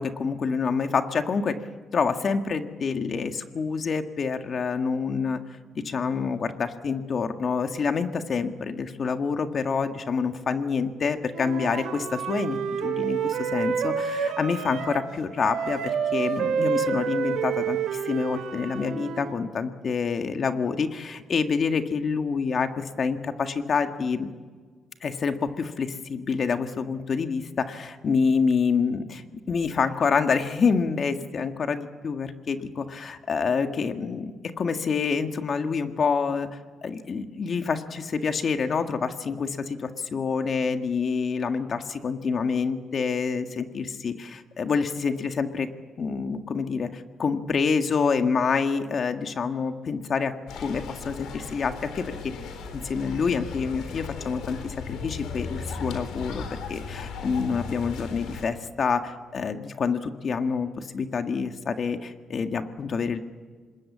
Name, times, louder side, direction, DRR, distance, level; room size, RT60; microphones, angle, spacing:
voice 1, 0.0-1.6 1.9-5.4 5.7-15.8 16.1-24.3 25.0-29.2 29.5-36.5 36.8-45.7 46.0-50.3 50.6-52.3 52.7-63.2, left 5 dB, 50° left, 7 dB, 1.7 m, -27 dB
Wind instrument woodwind instrument, 11.3-15.1 15.4-19.4, right 7 dB, 85° right, 2.8 m, -29 dB
sound 1, 50.5-58.5, left 5 dB, 85° left, 3.8 m, -37 dB
26.5 x 20.5 x 7.5 m, 1.5 s
cardioid pair, 90°, 0 cm